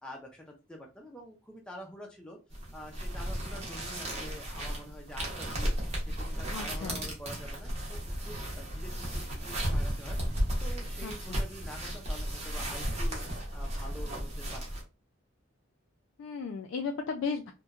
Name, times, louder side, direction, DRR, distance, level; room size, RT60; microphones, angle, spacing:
voice 1, 0.0-2.4 2.7-5.7 6.0-10.2 10.6-13.2 13.5-14.6, left 1 dB, 5° left, 0 dB, 0.4 m, -47 dB
sound 1, 2.5-14.8, equal, 30° right, 0.8 m, -34 dB
voice 2, 6.5-7.0 11.0-11.4 16.2-17.5, left 5 dB, 85° left, 4 dB, 0.3 m, -35 dB
2.8 x 2.2 x 2.3 m, 0.30 s
head